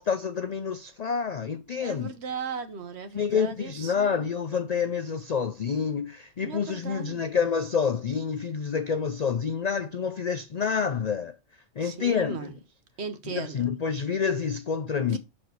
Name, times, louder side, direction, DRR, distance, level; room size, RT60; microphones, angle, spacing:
voice 1, 0.0-2.1 3.1-11.4 11.8-12.5 13.3-15.2, left 6 dB, 80° left, 0.3 m, -28 dB
voice 2, 1.8-4.3 6.4-7.3 11.8-12.5 13.0-13.7 15.1-15.2, right 5 dB, 55° right, 1.1 m, -37 dB
6.7 x 4.3 x 4.5 m
omnidirectional pair, 1.4 m